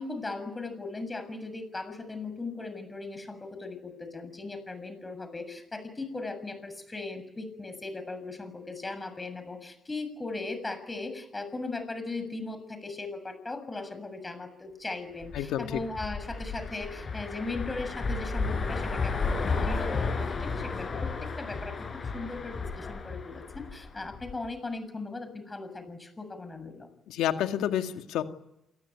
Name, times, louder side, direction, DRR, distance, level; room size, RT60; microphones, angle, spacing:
voice 1, 0.0-21.9 22.1-26.9, left 3 dB, 20° left, 10 dB, 7.0 m, -38 dB
sound 1, 15.2-24.5, left 4 dB, 40° left, 7.6 m, -33 dB
voice 2, 15.3-15.8 27.1-28.2, left 11 dB, 90° left, 6 dB, 2.1 m, -29 dB
29.0 x 18.5 x 9.3 m, 0.89 s
cardioid pair, 90°, 0 cm